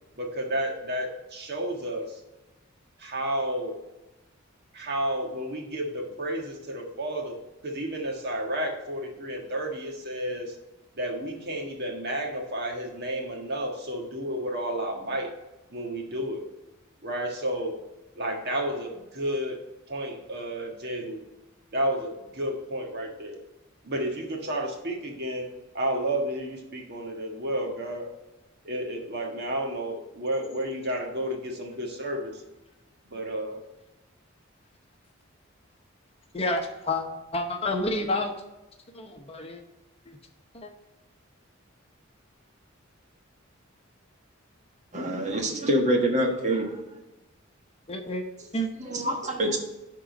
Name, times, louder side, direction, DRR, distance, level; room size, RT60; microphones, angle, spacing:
voice 1, 0.2-2.2 3.0-3.8 4.7-7.4 7.6-10.6 10.9-15.3 15.7-16.5 17.0-17.8 18.1-19.6 19.9-21.2 21.7-23.4 23.8-25.5 25.7-28.1 28.6-32.4 33.0-33.6, right 1 dB, 55° right, 2 dB, 1.4 m, -31 dB
voice 2, 36.3-37.1 37.3-38.3 38.9-39.6 40.1-40.2 40.5-40.7 47.9-48.2 48.5-48.7, left 1 dB, 30° left, 4 dB, 0.8 m, -29 dB
voice 3, 44.9-46.8 48.9-49.6, right 1 dB, 35° right, 2 dB, 1.4 m, -25 dB
11.0 x 3.8 x 5.2 m, 1.0 s
head